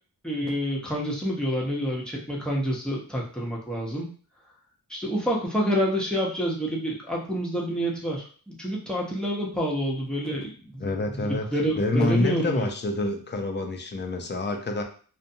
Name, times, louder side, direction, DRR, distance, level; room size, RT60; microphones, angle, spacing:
voice 1, 0.2-4.1 4.9-12.7, equal, ahead, -4 dB, 0.8 m, -28 dB
voice 2, 10.8-11.5 11.8-14.8, left 2 dB, 30° left, 4 dB, 0.5 m, -27 dB
2.5 x 2.1 x 2.6 m, 0.42 s
wide cardioid pair, 75°, 36 cm